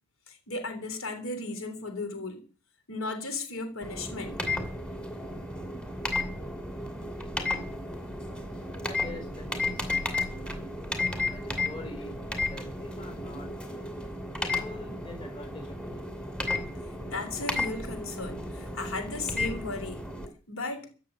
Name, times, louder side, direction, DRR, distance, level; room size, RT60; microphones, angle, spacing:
voice 1, 0.3-2.5 2.9-4.4 17.0-20.1 20.5-20.9, left 3 dB, 75° left, 3.5 m, -35 dB
sound 1, 3.8-20.3, left 2 dB, 5° left, 2.4 m, -33 dB
voice 2, 8.9-10.2 11.3-13.9 14.5-16.1, left 2 dB, 25° left, 4.0 m, -45 dB
15.5 x 6.7 x 9.7 m
head